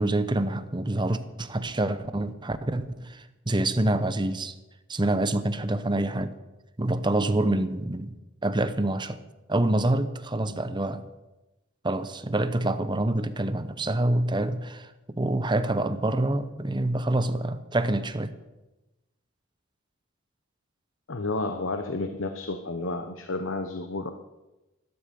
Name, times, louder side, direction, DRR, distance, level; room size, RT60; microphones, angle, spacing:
voice 1, 0.0-4.5 4.9-6.4 6.8-8.1 8.4-9.2 9.5-11.0 11.8-14.9 15.1-18.3, right 1 dB, 20° right, 0.8 m, -26 dB
voice 2, 21.1-24.1, left 2 dB, 65° left, 0.9 m, -31 dB
12.5 x 12.5 x 6.9 m
head